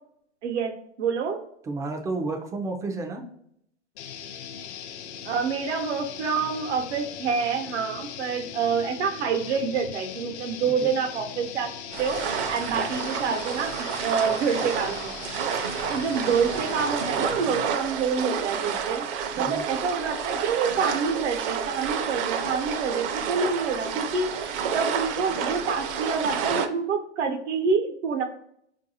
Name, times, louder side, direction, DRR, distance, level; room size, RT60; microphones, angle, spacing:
voice 1, 0.4-0.7 1.0-1.4 5.2-11.7 12.0-12.2 12.5-13.7 14.0-15.1 15.4-15.5 15.9-19.1 19.3-24.3 24.7-28.2, right 5 dB, 75° right, 5 dB, 0.9 m, -27 dB
voice 2, 1.6-3.2 10.6-10.9 19.4-19.6, right 3 dB, 10° right, 3 dB, 0.3 m, -31 dB
sound 1, 4.0-17.7, left 8 dB, 75° left, 0.5 m, -39 dB
sound 2, 11.9-26.7, right 7 dB, 50° right, 0.6 m, -30 dB
4.6 x 2.6 x 2.8 m, 0.71 s
hypercardioid pair, 125°, 34 cm